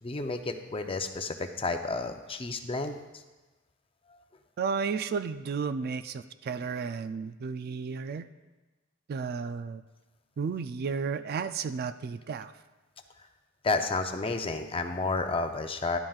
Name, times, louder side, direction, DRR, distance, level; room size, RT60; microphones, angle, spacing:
voice 1, 0.0-3.2 13.6-16.0, left 3 dB, 25° left, 6 dB, 0.6 m, -31 dB
voice 2, 4.6-8.3 9.1-9.8 10.4-12.5, right 5 dB, 50° right, 12 dB, 0.3 m, -33 dB
11.5 x 11.0 x 2.4 m, 1.2 s
head